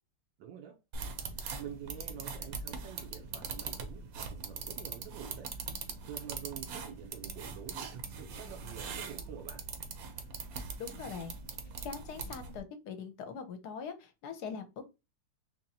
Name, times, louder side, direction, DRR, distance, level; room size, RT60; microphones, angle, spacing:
voice 1, 0.4-0.8 1.6-5.5 6.1-9.6, right 9 dB, 90° right, 1.4 m, -47 dB
sound 1, 0.9-12.6, right 5 dB, 65° right, 1.0 m, -42 dB
voice 2, 10.8-11.3 11.8-14.8, left 6 dB, 65° left, 1.2 m, -42 dB
4.0 x 3.0 x 2.7 m
omnidirectional pair, 2.0 m